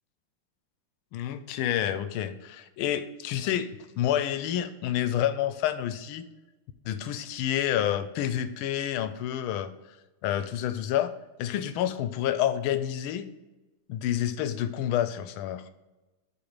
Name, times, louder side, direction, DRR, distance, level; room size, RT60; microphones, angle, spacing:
voice 1, 1.1-3.7 4.0-6.3 6.8-9.7 10.2-11.1 11.4-13.3 13.9-15.6, left 11 dB, 75° left, 12 dB, 1.4 m, -28 dB
8.0 x 3.1 x 6.0 m, 1.1 s
omnidirectional pair, 2.4 m